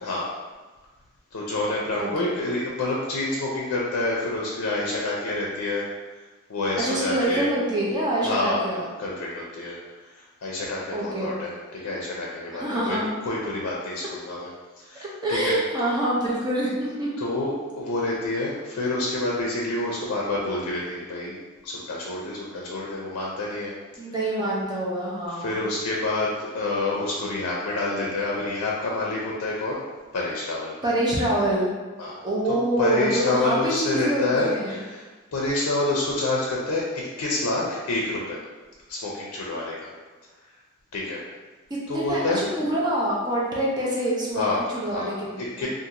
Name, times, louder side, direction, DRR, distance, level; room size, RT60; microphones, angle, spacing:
voice 1, 1.3-5.8 6.5-7.5 8.2-9.8 10.1-13.0 13.2-14.5 14.8-15.5 17.2-21.4 21.6-23.7 25.4-29.8 30.1-30.8 32.0-32.2 32.8-35.1 35.3-38.4 38.9-39.9 40.9-41.2 41.9-42.4 44.4-44.6 44.9-45.1 45.4-45.7, left 2 dB, 85° left, -4 dB, 0.4 m, -28 dB
voice 2, 2.0-2.3 6.8-8.8 10.9-11.4 12.5-13.1 15.2-17.1 24.0-25.6 30.8-31.7 32.2-34.8 41.9-45.7, right 1 dB, 20° right, -5 dB, 0.5 m, -26 dB
2.5 x 2.4 x 2.8 m, 1.3 s
head